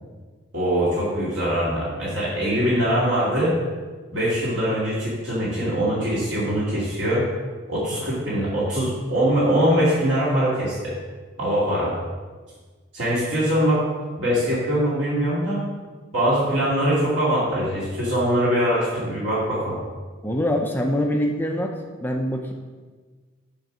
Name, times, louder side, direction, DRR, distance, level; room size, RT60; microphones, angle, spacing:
voice 1, 0.5-3.6 4.1-7.3 7.7-10.9 11.4-12.0 12.9-13.8 14.2-15.6 16.1-19.8, equal, 55° right, -8 dB, 2.4 m, -22 dB
voice 2, 20.2-21.7 22.0-22.5, equal, 10° left, 1 dB, 0.7 m, -24 dB
11.5 x 4.0 x 6.2 m, 1.4 s
head